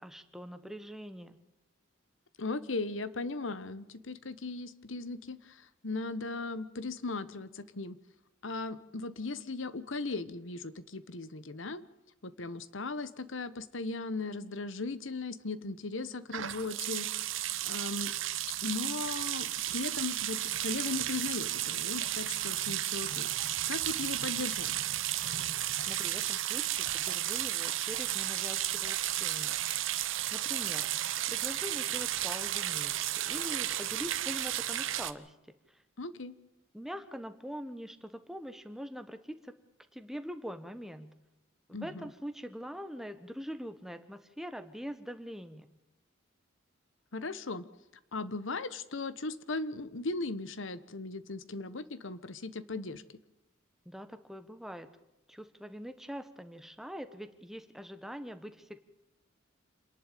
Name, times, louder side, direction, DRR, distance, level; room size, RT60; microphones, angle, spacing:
voice 1, 0.0-1.4 25.9-29.6 30.3-30.9 31.3-35.4 35.7-35.8 36.7-39.6 39.9-41.1 41.7-45.7 53.8-54.9 55.3-58.8, equal, ahead, 10 dB, 1.2 m, -43 dB
voice 2, 2.4-8.0 8.4-11.8 12.2-17.1 17.6-18.1 18.6-23.3 23.7-24.7 36.0-36.4 41.7-42.0 47.1-47.7 48.1-53.0, left 3 dB, 70° left, 16 dB, 1.2 m, -37 dB
sound 1, 16.3-35.1, right 13 dB, 70° right, 1.0 m, -33 dB
27.0 x 11.0 x 9.2 m, 0.96 s
head